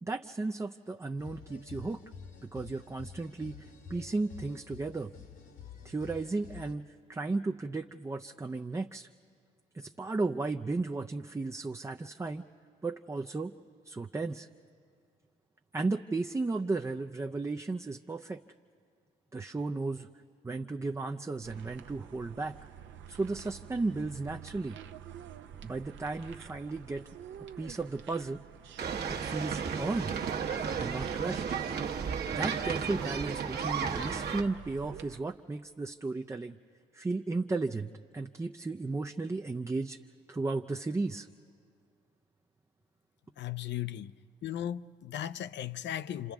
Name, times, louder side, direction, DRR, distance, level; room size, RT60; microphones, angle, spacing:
voice 1, 0.0-2.0 2.4-5.1 5.8-6.8 7.1-9.1 9.7-12.4 12.8-13.5 13.8-14.5 15.7-18.4 19.3-20.1 20.4-22.6 23.1-24.8 25.6-27.1 27.6-28.4 29.1-30.2 30.8-31.4 32.3-36.6 36.9-40.0 40.3-41.3, right 3 dB, 15° right, 0.4 m, -34 dB
sound 1, 1.2-6.7, left 7 dB, 85° left, 1.8 m, -49 dB
sound 2, 21.4-35.2, right 9 dB, 70° right, 0.7 m, -49 dB
sound 3, 28.8-34.4, right 6 dB, 55° right, 1.1 m, -33 dB
voice 2, 43.4-44.1 44.4-46.3, left 11 dB, 65° left, 0.5 m, -36 dB
30.0 x 26.5 x 3.5 m
cardioid pair, 90°, 20 cm